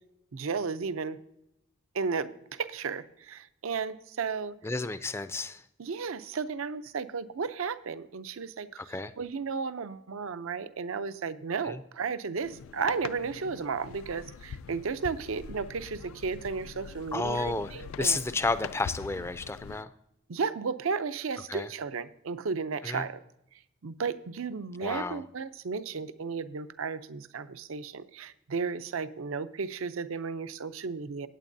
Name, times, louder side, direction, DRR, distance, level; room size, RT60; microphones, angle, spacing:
voice 1, 0.3-1.2 1.9-4.5 5.8-8.8 9.2-18.2 20.3-23.2 23.8-31.3, right 5 dB, 85° right, 13 dB, 0.5 m, -34 dB
voice 2, 4.6-5.6 8.8-9.1 11.6-11.8 17.1-17.7 18.0-19.9 21.5-21.7 22.8-23.0 24.8-25.2, left 3 dB, 10° left, 13 dB, 0.3 m, -31 dB
sound 1, 12.4-19.8, left 7 dB, 90° left, 0.3 m, -44 dB
15.5 x 9.1 x 2.6 m, 0.83 s
head